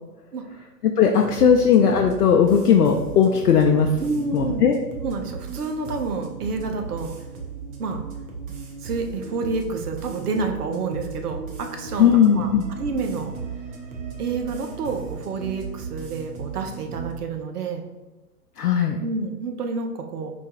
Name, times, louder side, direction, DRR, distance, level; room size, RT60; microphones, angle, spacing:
voice 1, 0.8-3.9 4.3-4.8 12.0-12.7 18.6-19.0, left 7 dB, 70° left, 2 dB, 0.6 m, -17 dB
sound 1, 1.2-17.1, right 5 dB, 25° right, 0.5 m, -36 dB
voice 2, 4.0-4.7 5.0-7.1 7.8-8.0 8.8-12.1 12.4-12.5 12.8-13.4 14.2-17.8 19.0-20.3, right 4 dB, 65° right, 4 dB, 0.8 m, -29 dB
4.4 x 2.3 x 4.2 m, 1.1 s
figure-of-eight pair, 110°, 48 cm